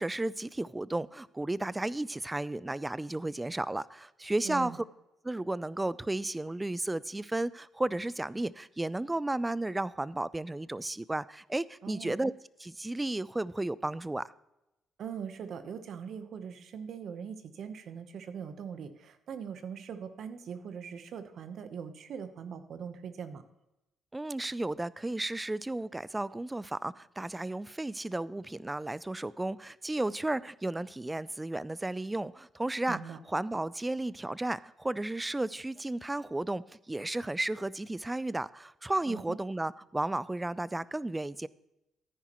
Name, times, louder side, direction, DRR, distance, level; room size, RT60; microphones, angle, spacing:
voice 1, 0.0-4.8 5.2-12.3 12.6-14.3 24.1-41.5, right 2 dB, 15° right, 0.4 m, -33 dB
voice 2, 4.4-4.8 11.8-12.1 15.0-23.4 32.9-33.2 39.1-39.4, right 7 dB, 65° right, 0.9 m, -41 dB
14.5 x 9.9 x 3.0 m
cardioid pair, 90°, 0 cm